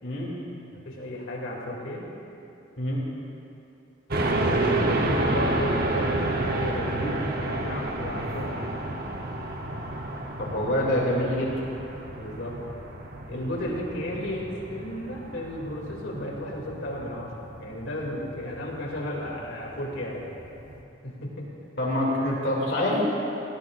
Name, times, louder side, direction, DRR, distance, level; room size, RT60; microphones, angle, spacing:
voice 1, 0.0-0.4 2.8-3.0 10.4-11.5 21.8-23.0, left 1 dB, 60° left, -4 dB, 2.5 m, -26 dB
voice 2, 0.8-2.0 4.3-8.7 12.2-12.6 13.3-20.3 21.0-21.5, equal, 80° left, -2 dB, 2.5 m, -33 dB
sound 1, 4.1-20.8, right 2 dB, 50° right, 0.9 m, -30 dB
17.5 x 16.0 x 2.5 m, 2.8 s
head